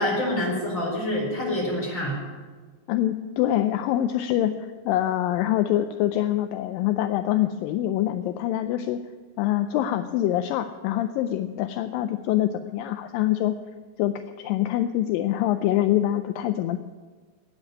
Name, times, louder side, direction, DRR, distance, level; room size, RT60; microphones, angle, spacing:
voice 1, 0.0-2.2, left 1 dB, 20° left, -3 dB, 4.4 m, -26 dB
voice 2, 2.9-9.0 9.4-13.6 14.0-16.8, left 13 dB, 80° left, 9 dB, 2.1 m, -25 dB
10.5 x 9.3 x 9.7 m, 1.4 s
omnidirectional pair, 4.4 m